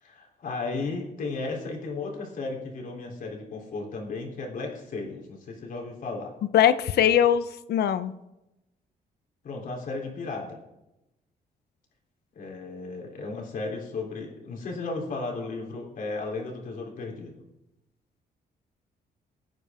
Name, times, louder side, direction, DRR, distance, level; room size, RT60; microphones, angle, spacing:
voice 1, 0.0-6.3 9.4-10.6 12.3-17.4, left 3 dB, 55° left, 0 dB, 3.6 m, -34 dB
voice 2, 6.5-8.1, left 10 dB, 75° left, 13 dB, 0.8 m, -21 dB
23.5 x 9.2 x 3.7 m, 0.94 s
cardioid pair, 140°, 17 cm